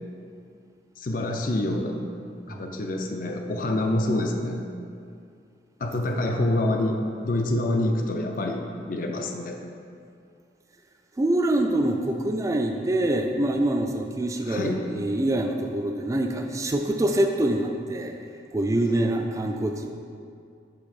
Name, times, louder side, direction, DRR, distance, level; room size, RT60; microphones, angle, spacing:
voice 1, 1.0-2.0 2.5-4.6 5.8-8.6 8.9-9.6 14.5-14.8, left 1 dB, 50° left, 3 dB, 0.4 m, -26 dB
voice 2, 2.5-2.8 11.2-18.2 18.5-19.9, right 1 dB, 20° right, 4 dB, 0.3 m, -25 dB
6.0 x 3.5 x 4.9 m, 2.4 s
head